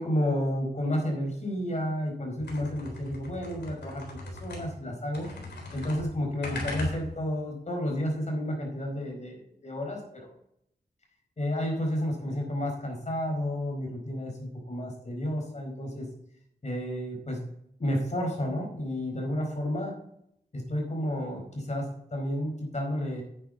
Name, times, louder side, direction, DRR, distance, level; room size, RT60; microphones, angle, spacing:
voice 1, 0.0-5.3 5.7-10.3 11.4-16.1 16.6-17.4 17.8-19.9 20.5-23.2, equal, 45° left, 1 dB, 4.6 m, -31 dB
sound 1, 2.4-4.9 5.1-7.4, left 2 dB, 85° left, 3.7 m, -38 dB
10.0 x 9.5 x 4.1 m, 0.74 s
wide cardioid pair, 85°, 17 cm